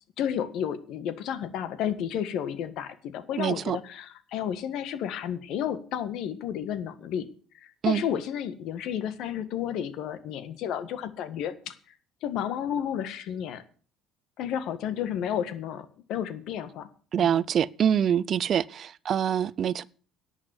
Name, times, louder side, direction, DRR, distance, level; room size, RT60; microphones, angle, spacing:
voice 1, 0.2-7.3 7.5-11.7 12.2-13.6 14.4-16.9 17.2-17.4, left 9 dB, 70° left, 1.6 m, -32 dB
voice 2, 3.4-3.8 7.8-8.0 17.1-19.8, right 9 dB, 50° right, 0.5 m, -25 dB
11.5 x 7.3 x 9.6 m
supercardioid pair, 100°, 0 cm